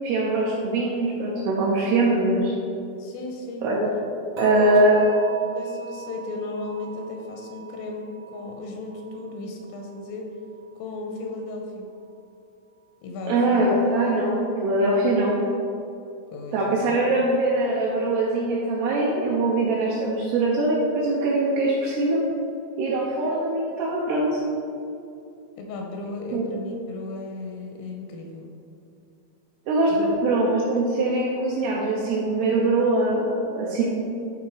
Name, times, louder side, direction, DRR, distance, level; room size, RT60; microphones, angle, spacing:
voice 1, 0.0-2.5 3.6-3.9 4.4-5.1 13.3-15.4 16.5-22.2 22.8-24.4 26.3-26.4 29.7-33.8, right 2 dB, 85° right, -5 dB, 2.3 m, -22 dB
voice 2, 3.0-3.7 4.4-4.8 5.4-10.3 10.8-11.9 13.0-13.7 16.3-17.0 25.6-28.5 29.9-30.2, left 2 dB, 85° left, 2 dB, 3.2 m, -35 dB
sound 1, 4.4-11.4 11.7-12.1 12.6-12.7, right 5 dB, 65° right, 1.8 m, -43 dB
11.5 x 4.1 x 4.6 m, 2.6 s
omnidirectional pair, 6.0 m